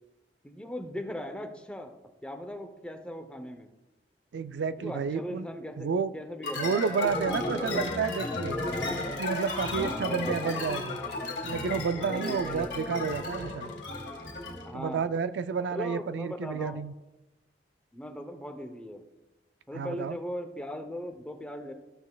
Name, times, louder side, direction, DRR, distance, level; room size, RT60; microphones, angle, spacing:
voice 1, 0.4-1.9 2.2-3.7 4.8-7.0 7.5-8.5 9.8-11.3 12.0-12.7 14.6-15.1 15.7-16.8 17.9-19.0 19.7-21.7, equal, 5° left, 5 dB, 0.7 m, -39 dB
voice 2, 4.3-5.5 5.8-6.1 6.6-8.7 9.2-11.0 11.4-13.7 14.7-16.9 19.7-20.2, right 6 dB, 80° right, 13 dB, 0.3 m, -31 dB
sound 1, 6.4-14.7, left 2 dB, 85° left, 1.7 m, -34 dB
14.0 x 6.0 x 2.3 m, 1.0 s
head